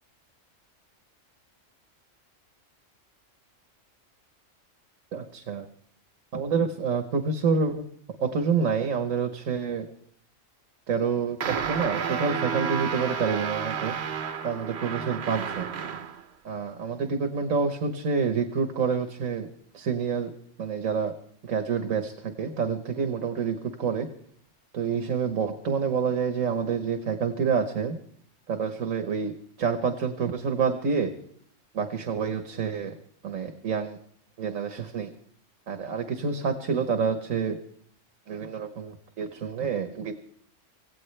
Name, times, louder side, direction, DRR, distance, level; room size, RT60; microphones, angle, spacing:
voice 1, 5.1-5.7 6.3-7.9 8.2-9.9 10.9-14.0 14.4-15.7 16.5-19.5 19.7-20.3 20.6-21.1 21.4-24.1 24.7-28.0 28.5-29.3 29.6-31.1 31.7-32.9 33.2-34.0 34.4-35.1 35.7-37.6 38.3-40.1, right 5 dB, 85° right, 6 dB, 1.6 m, -28 dB
sound 1, 11.4-16.2, right 7 dB, 60° right, 1.0 m, -31 dB
25.5 x 16.5 x 3.3 m, 0.65 s
omnidirectional pair, 1.3 m